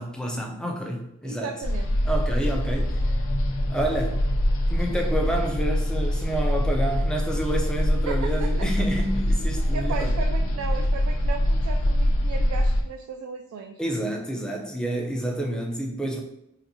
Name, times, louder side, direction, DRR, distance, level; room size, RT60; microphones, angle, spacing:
voice 1, 0.0-1.5 2.1-2.9 3.7-4.2 4.7-10.1 13.8-16.2, right 1 dB, 5° left, 1 dB, 0.4 m, -29 dB
voice 2, 1.2-1.9 8.1-8.7 9.7-13.8, right 5 dB, 80° right, 3 dB, 0.3 m, -35 dB
sound 1, 1.6-12.8, equal, 70° left, 0.5 m, -24 dB
4.0 x 2.5 x 2.7 m, 0.83 s
head